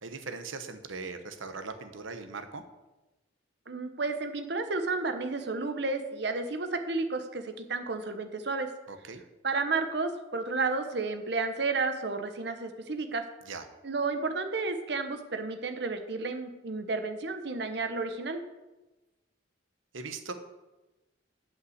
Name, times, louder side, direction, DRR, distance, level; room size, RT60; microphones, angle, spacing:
voice 1, 0.0-2.6 8.9-9.2 13.5-13.7 19.9-20.3, right 4 dB, 90° right, 8 dB, 1.0 m, -40 dB
voice 2, 3.7-8.7 9.4-13.2 13.8-18.4, right 3 dB, 60° right, 7 dB, 1.0 m, -32 dB
8.2 x 5.7 x 7.9 m, 1.1 s
head